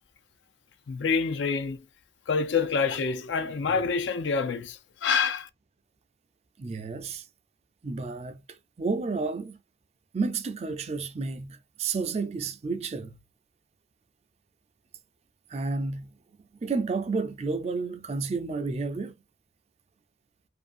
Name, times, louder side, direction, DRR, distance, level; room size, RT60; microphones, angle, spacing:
voice 1, 0.9-1.8 2.3-5.5, left 5 dB, 85° left, 0.4 m, -27 dB
voice 2, 6.6-7.3 7.8-9.6 10.1-13.2 15.5-16.1 16.6-19.1, right 4 dB, 35° right, 0.4 m, -31 dB
2.6 x 2.6 x 2.4 m
head